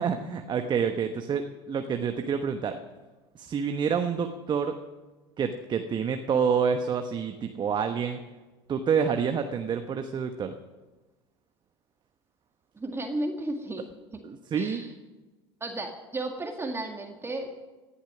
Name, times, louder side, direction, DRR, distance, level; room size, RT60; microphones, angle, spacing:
voice 1, 0.0-2.8 3.3-4.8 5.4-8.2 8.7-10.6 14.2-14.8, right 6 dB, 35° right, 7 dB, 1.1 m, -28 dB
voice 2, 12.7-13.8 14.5-14.9 15.6-17.5, right 2 dB, 20° right, 4 dB, 1.8 m, -33 dB
17.5 x 11.5 x 6.1 m, 1.2 s
hypercardioid pair, 75°, 14 cm